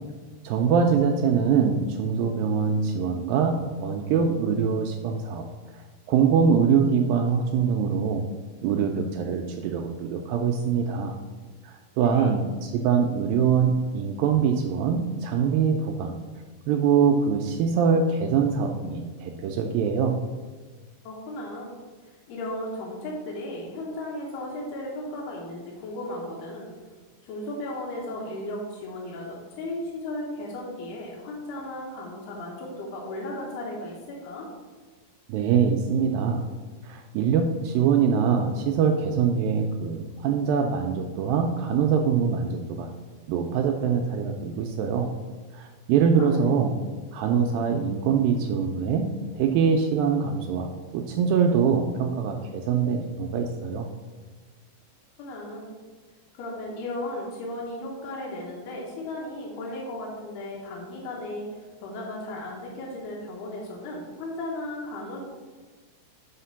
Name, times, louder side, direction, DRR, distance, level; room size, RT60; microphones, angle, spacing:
voice 1, 0.4-5.5 6.1-8.3 8.6-11.2 11.6-16.2 16.7-20.2 35.3-36.5 36.8-42.9 43.3-45.1 45.5-46.8 47.1-49.1 49.3-53.9, right 6 dB, 80° right, 3 dB, 2.1 m, -23 dB
voice 2, 12.0-12.4 21.0-21.7 22.0-26.7 27.2-34.5 46.2-46.4 55.2-55.7 56.3-65.2, left 1 dB, 85° left, -3 dB, 3.2 m, -35 dB
5.8 x 5.7 x 5.6 m, 1.4 s
omnidirectional pair, 4.5 m